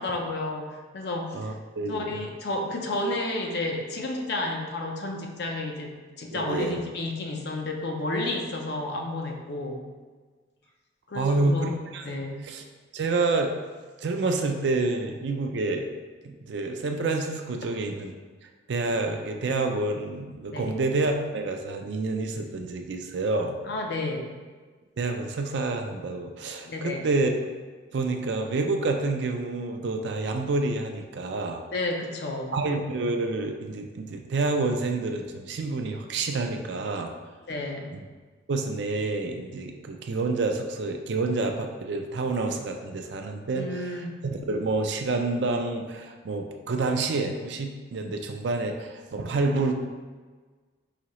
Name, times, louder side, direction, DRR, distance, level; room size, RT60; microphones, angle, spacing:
voice 1, 0.0-1.5 1.9-9.8 11.1-11.7 12.0-12.5 20.5-20.8 23.7-24.4 26.6-27.1 31.7-32.6 37.5-37.9 43.5-44.2, left 2 dB, 60° left, 2 dB, 0.5 m, -31 dB
voice 2, 1.3-2.2 6.3-6.8 11.1-12.1 12.5-12.6 12.9-13.5 14.0-15.9 16.2-18.1 18.7-23.6 25.0-27.3 27.9-31.6 32.5-37.1 37.9-38.0 38.5-49.7, right 3 dB, 65° right, 4 dB, 0.4 m, -28 dB
4.9 x 2.8 x 3.0 m, 1.4 s
head